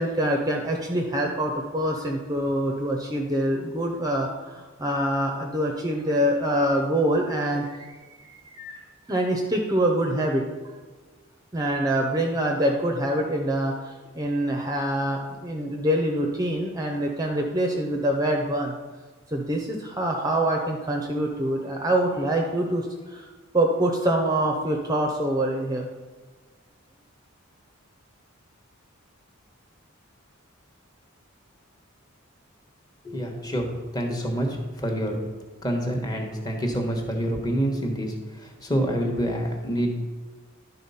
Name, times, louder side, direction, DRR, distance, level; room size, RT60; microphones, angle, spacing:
voice 1, 0.0-8.8 9.1-10.4 11.5-18.7 19.3-23.3 23.5-25.9, right 1 dB, 20° right, 2 dB, 0.6 m, -25 dB
voice 2, 33.0-35.2 35.6-40.0, equal, 20° left, 2 dB, 1.2 m, -27 dB
11.0 x 4.0 x 5.6 m, 1.4 s
head